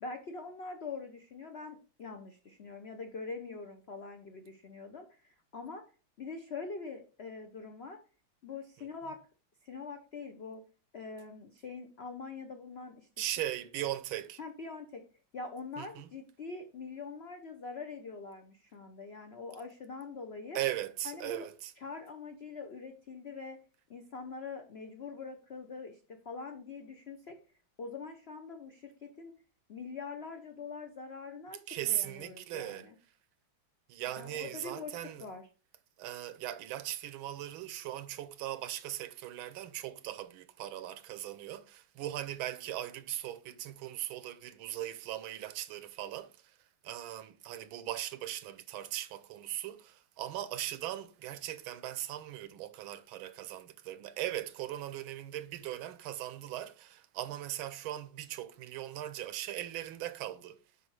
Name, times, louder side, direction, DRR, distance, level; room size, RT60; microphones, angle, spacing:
voice 1, 0.0-5.8 6.2-8.0 8.4-9.2 9.6-10.6 10.9-13.1 14.4-15.0 15.3-20.6 21.0-21.5 21.8-23.6 23.9-27.4 27.8-29.3 29.7-32.9 34.1-35.5, left 4 dB, 80° left, 0.5 m, -44 dB
voice 2, 13.2-14.4 15.8-16.1 20.5-21.7 31.7-32.9 33.9-35.3 36.0-46.6 46.8-60.6, right 13 dB, 85° right, 1.5 m, -39 dB
8.1 x 5.4 x 3.2 m
omnidirectional pair, 2.2 m